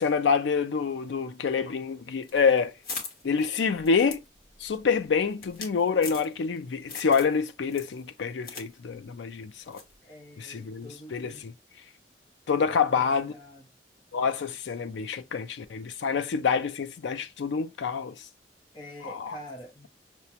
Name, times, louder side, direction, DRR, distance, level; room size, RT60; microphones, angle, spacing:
voice 1, 0.0-2.7 3.2-4.2 4.6-9.8 10.4-11.5 12.5-13.3 14.1-18.2 19.0-19.3, left 5 dB, 80° left, 0.4 m, -27 dB
sound 1, 2.2-6.6 6.9-7.4 7.7-8.7 8.9-9.0 9.7-10.0, left 3 dB, 55° left, 1.2 m, -40 dB
voice 2, 10.0-11.5 12.7-13.7 18.7-19.9, equal, 25° left, 0.5 m, -46 dB
5.8 x 2.2 x 2.8 m
head